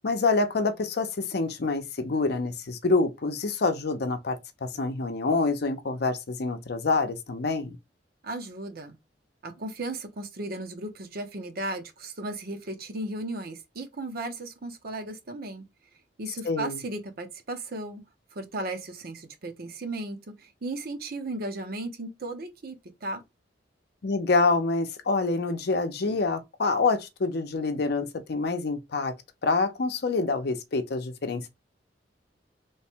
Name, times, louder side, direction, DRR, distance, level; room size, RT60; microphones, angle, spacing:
voice 1, 0.0-7.8 16.4-16.8 24.0-29.1 29.4-31.5, left 3 dB, 65° left, 0.6 m, -26 dB
voice 2, 8.2-9.0 9.4-15.6 16.2-18.0 18.3-22.8 23.0-23.2, right 2 dB, 55° right, 0.8 m, -35 dB
3.2 x 2.2 x 4.3 m
head